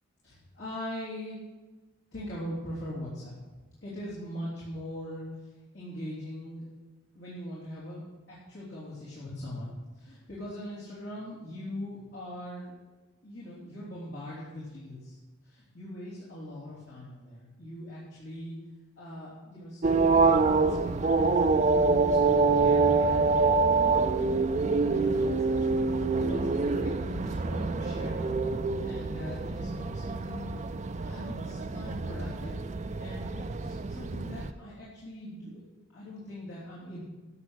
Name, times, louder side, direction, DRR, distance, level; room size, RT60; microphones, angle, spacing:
voice 1, 0.2-1.4 2.1-3.3 3.8-6.7 7.1-8.0 8.3-12.7 13.2-15.2 15.4-18.6 19.0-20.9 21.3-30.5 31.0-32.5 33.0-35.6 35.9-37.0, left 1 dB, 55° left, -7 dB, 3.1 m, -41 dB
sound 1, 19.8-34.5, right 4 dB, 35° right, 0.4 m, -26 dB
12.5 x 7.6 x 6.3 m, 1.2 s
head